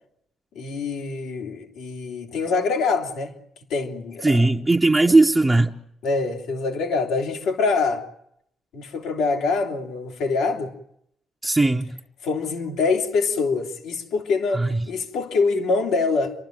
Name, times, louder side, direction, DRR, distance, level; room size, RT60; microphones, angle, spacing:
voice 1, 0.5-3.3 3.7-4.4 6.0-8.0 8.7-10.7 12.2-16.3, left 4 dB, 85° left, 2.8 m, -24 dB
voice 2, 4.2-5.8 11.4-12.0 14.5-14.9, right 2 dB, 15° right, 0.9 m, -18 dB
28.5 x 12.0 x 9.1 m
cardioid pair, 90°, 0 cm